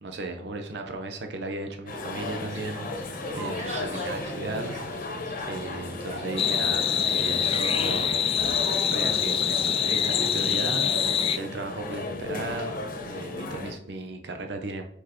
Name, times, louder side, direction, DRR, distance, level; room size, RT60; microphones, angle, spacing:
voice 1, 0.0-4.7 5.5-8.1 8.8-14.8, right 2 dB, 70° right, 4 dB, 0.8 m, -36 dB
sound 1, 1.9-13.7, left 2 dB, 50° left, 0.9 m, -34 dB
Fowl, 2.5-7.5, right 3 dB, 40° right, 1.2 m, -44 dB
sound 2, 6.4-11.4, left 8 dB, 30° left, 0.3 m, -25 dB
4.9 x 4.5 x 4.3 m, 0.66 s
head